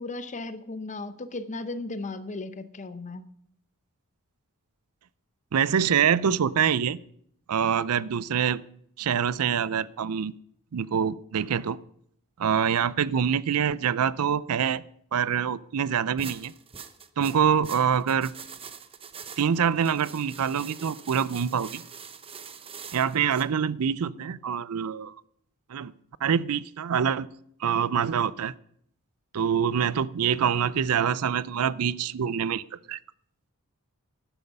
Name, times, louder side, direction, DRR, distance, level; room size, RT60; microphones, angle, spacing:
voice 1, 0.0-3.2, left 2 dB, 35° left, 0.7 m, -36 dB
voice 2, 5.5-7.0 7.5-8.6 9.0-10.3 10.7-11.8 12.4-14.8 15.1-16.5 17.2-18.3 19.4-21.8 22.9-25.1 25.7-25.9 26.2-27.3 27.6-28.5 29.3-33.0, right 7 dB, 70° right, 0.5 m, -25 dB
sound 1, 16.2-23.5, right 6 dB, 25° right, 0.8 m, -44 dB
12.5 x 10.5 x 5.4 m
head